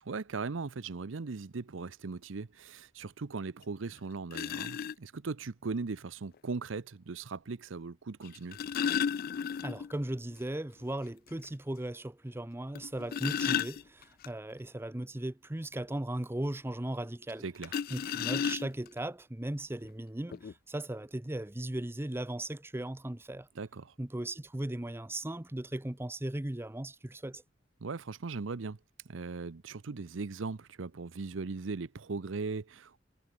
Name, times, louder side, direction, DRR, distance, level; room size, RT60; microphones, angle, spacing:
voice 1, 0.0-8.6 17.4-17.8 23.6-23.9 27.8-28.8 29.1-33.0, right 4 dB, 80° right, 0.7 m, -39 dB
sound 1, 3.6-3.7 4.3-5.0 6.3-6.4 8.2-10.0 10.3-10.4 10.8-10.9 11.4-11.5 12.8-14.3 17.6-19.0 19.9-20.0 20.3-20.5, left 7 dB, 50° left, 0.3 m, -33 dB
voice 2, 9.6-17.4 17.9-23.5 24.0-27.4, right 1 dB, 10° right, 0.7 m, -37 dB
head